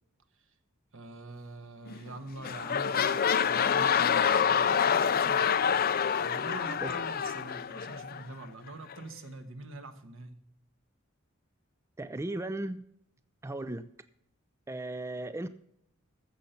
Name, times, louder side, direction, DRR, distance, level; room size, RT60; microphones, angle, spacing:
voice 1, 0.9-10.4, right 2 dB, 65° right, 8 dB, 1.4 m, -45 dB
sound 1, 1.9-2.1 2.4-8.2 8.9-9.0, left 7 dB, 45° left, 0.5 m, -27 dB
voice 2, 12.0-12.8 13.4-13.9 14.7-15.5, right 2 dB, 15° right, 12 dB, 0.4 m, -36 dB
15.0 x 6.7 x 5.7 m, 0.73 s
head